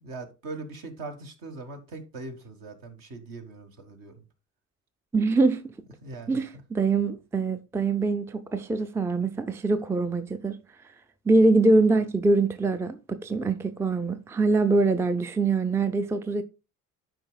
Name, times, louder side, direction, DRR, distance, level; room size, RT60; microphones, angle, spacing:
voice 1, 0.0-4.2 6.0-6.4, right 3 dB, 55° right, 1.6 m, -41 dB
voice 2, 5.1-5.7 6.3-10.6 11.3-16.4, right 3 dB, 5° right, 0.5 m, -24 dB
12.5 x 5.1 x 2.3 m
figure-of-eight pair, 45°, 40 cm